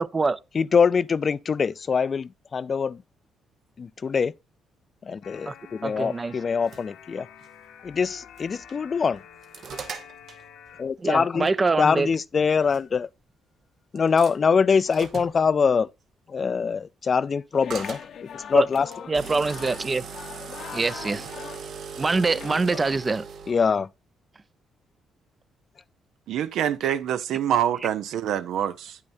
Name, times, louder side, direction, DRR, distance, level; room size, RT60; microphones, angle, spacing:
voice 1, 0.0-0.4 5.5-5.6 5.8-6.5 11.0-12.1 18.5-18.7 19.1-20.0 20.7-21.3 22.0-23.2, right 3 dB, 30° right, 0.5 m, -24 dB
voice 2, 0.6-3.0 3.8-4.3 5.1-7.3 7.8-9.2 10.8-11.5 11.8-13.1 13.9-15.9 16.3-18.0 18.5-18.9 23.5-23.9, left 5 dB, 40° left, 0.3 m, -23 dB
sound 1, 5.2-10.8, left 8 dB, 85° left, 1.1 m, -48 dB
sound 2, 6.4-6.8 7.4-7.5 8.4-8.7 9.1-10.4 12.0-12.1 12.7-12.8 14.0-14.3 14.9-15.4 17.7-18.1 18.9-23.5, right 6 dB, 65° right, 1.0 m, -39 dB
sound 3, 17.5-22.9, left 8 dB, 65° left, 0.8 m, -41 dB
voice 3, 26.3-29.0, right 10 dB, 80° right, 0.6 m, -26 dB
9.2 x 8.6 x 2.6 m
cardioid pair, 90°, 0 cm